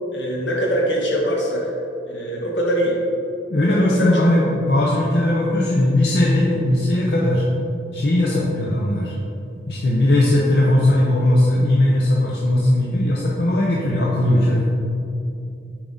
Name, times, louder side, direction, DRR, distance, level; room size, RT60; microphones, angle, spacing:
voice 1, 0.1-1.7 2.0-3.0 3.7-4.3, equal, 80° left, -3 dB, 1.4 m, -23 dB
voice 2, 3.5-7.4 7.9-9.1 9.7-14.6, left 1 dB, 65° left, -4 dB, 0.7 m, -18 dB
7.3 x 4.8 x 3.9 m, 2.6 s
head